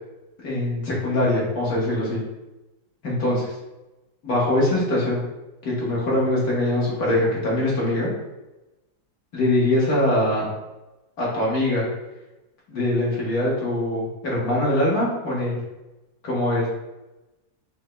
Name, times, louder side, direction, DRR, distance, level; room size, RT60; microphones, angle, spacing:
voice 1, 0.4-2.2 3.0-3.4 4.2-5.2 5.6-8.1 9.3-10.5 11.2-11.9 12.7-15.6 16.2-16.7, left 1 dB, 65° left, -5 dB, 1.8 m, -22 dB
5.4 x 2.3 x 3.1 m, 1.0 s
omnidirectional pair, 1.7 m